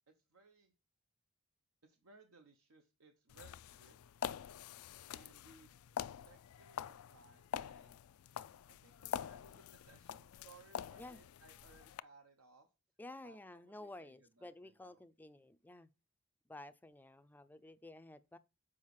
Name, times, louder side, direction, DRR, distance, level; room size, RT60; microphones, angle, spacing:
voice 1, 0.1-0.7 1.8-4.0 5.1-5.7 6.3-8.0 8.7-12.7 13.2-15.0, right 3 dB, 80° right, 0.9 m, -64 dB
sound 1, 3.3-12.0, left 9 dB, 80° left, 0.3 m, -46 dB
voice 2, 13.0-15.9 16.5-18.4, left 2 dB, 10° left, 0.4 m, -52 dB
7.3 x 5.0 x 4.7 m
head